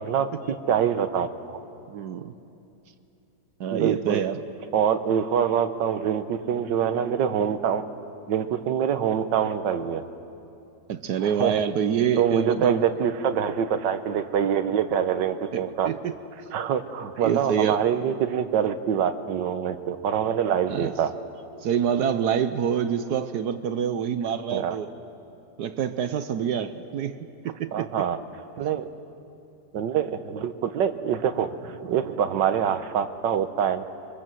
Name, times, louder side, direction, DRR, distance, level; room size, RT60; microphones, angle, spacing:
voice 1, 0.0-1.6 3.7-4.2 4.7-7.8 8.3-10.0 11.2-11.6 12.2-15.9 16.5-21.2 24.5-24.8 27.7-28.2 28.6-28.9 29.7-33.8, right 8 dB, 85° right, 9 dB, 1.6 m, -25 dB
voice 2, 1.9-2.3 3.6-4.4 10.9-12.9 15.5-16.1 17.2-17.8 20.7-20.9 21.6-24.9 25.6-27.2 27.4-27.9, right 8 dB, 65° right, 11 dB, 1.3 m, -26 dB
25.5 x 24.5 x 7.6 m, 2.7 s
omnidirectional pair, 1.9 m